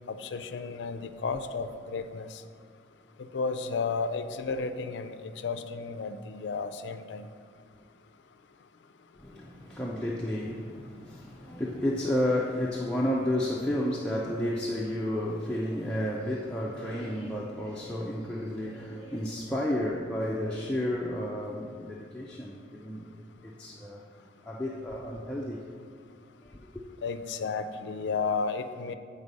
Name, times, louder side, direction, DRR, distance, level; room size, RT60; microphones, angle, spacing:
voice 1, 0.1-2.4 3.2-7.3 27.0-28.9, left 4 dB, 70° left, 0.4 m, -33 dB
voice 2, 9.2-23.1 23.4-24.0 24.5-25.6 26.4-26.8, left 1 dB, 5° left, 0.4 m, -31 dB
8.3 x 4.0 x 5.2 m
head